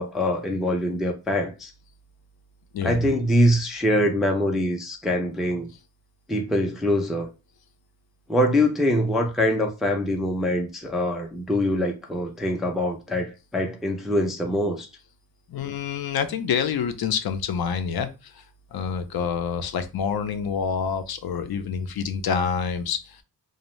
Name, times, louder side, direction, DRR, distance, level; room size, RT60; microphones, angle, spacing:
voice 1, 0.0-1.7 2.8-5.7 6.3-7.3 8.3-14.9, left 1 dB, ahead, 0.3 m, -24 dB
voice 2, 2.7-3.1 15.5-18.1 18.7-23.2, left 6 dB, 75° left, 0.5 m, -27 dB
2.6 x 2.0 x 3.0 m
wide cardioid pair, 130°, 37 cm